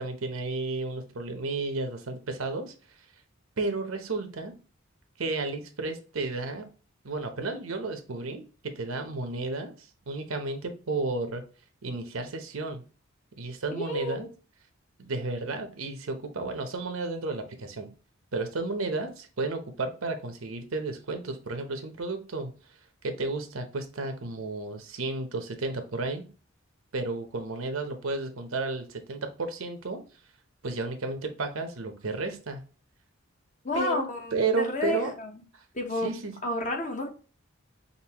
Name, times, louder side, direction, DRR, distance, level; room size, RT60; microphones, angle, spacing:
voice 1, 0.0-2.7 3.6-4.6 5.2-6.6 7.0-11.4 11.8-12.8 13.4-14.3 15.0-17.9 18.3-22.5 23.0-26.3 26.9-30.0 30.6-32.6 33.7-34.0 34.3-35.1 35.5-35.6 36.0-36.3, right 3 dB, 80° right, 0.8 m, -32 dB
voice 2, 13.7-14.3 33.6-35.3 35.7-36.1 36.4-37.1, left 1 dB, 40° left, 1.0 m, -31 dB
5.3 x 2.6 x 2.9 m
head